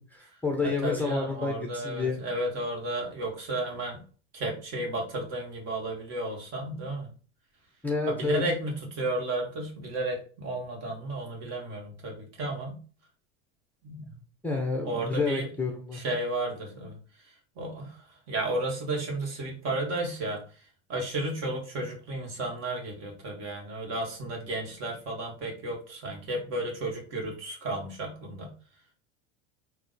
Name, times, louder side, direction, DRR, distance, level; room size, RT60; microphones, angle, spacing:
voice 1, 0.0-2.2 7.8-8.4 14.4-16.0, left 4 dB, 5° left, 2 dB, 0.6 m, -29 dB
voice 2, 0.6-4.0 4.3-7.1 8.1-12.8 13.8-14.2 14.8-15.5 15.9-17.0 17.6-18.0 18.3-20.4 20.9-28.5, right 2 dB, 45° right, 0 dB, 1.9 m, -33 dB
3.5 x 2.7 x 4.1 m, 0.38 s
supercardioid pair, 125°, 34 cm